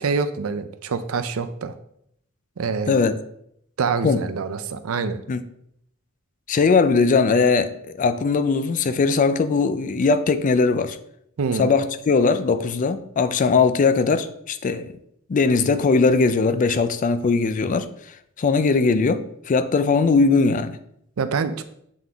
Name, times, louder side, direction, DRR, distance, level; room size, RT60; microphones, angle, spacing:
voice 1, 0.0-1.7 2.6-3.0 3.8-5.2 11.4-11.7 21.2-21.6, right 5 dB, 70° right, 0.5 m, -25 dB
voice 2, 6.5-11.0 11.6-14.9 15.3-17.9 18.4-20.8, left 4 dB, 40° left, 0.4 m, -20 dB
7.6 x 3.7 x 3.4 m
head